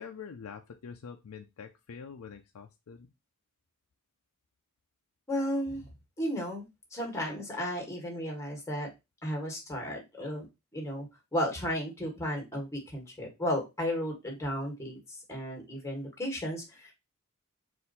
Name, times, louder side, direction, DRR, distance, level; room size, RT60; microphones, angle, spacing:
voice 1, 0.0-3.1, left 6 dB, 75° left, 4 dB, 0.5 m, -45 dB
voice 2, 5.3-5.9 6.2-8.9 9.2-10.5 10.7-15.0 15.3-16.9, equal, 15° left, 0 dB, 1.5 m, -34 dB
4.3 x 2.6 x 4.0 m, 0.23 s
head